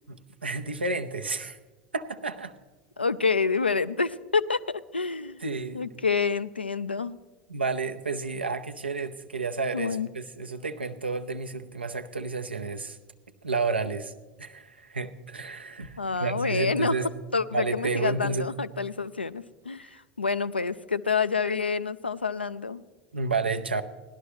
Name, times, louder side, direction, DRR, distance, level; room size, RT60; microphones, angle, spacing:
voice 1, 0.1-1.6 1.9-2.5 5.4-5.8 7.5-13.0 13.4-14.1 14.4-17.1 17.5-18.5 19.8-19.9 23.1-23.8, right 3 dB, 85° right, 7 dB, 0.6 m, -31 dB
voice 2, 3.0-4.6 4.9-5.4 5.7-7.2 9.7-10.1 16.0-16.9 17.3-22.8, left 5 dB, 90° left, 15 dB, 0.3 m, -28 dB
18.0 x 11.5 x 3.1 m, 1.2 s
figure-of-eight pair, 75°, 6 cm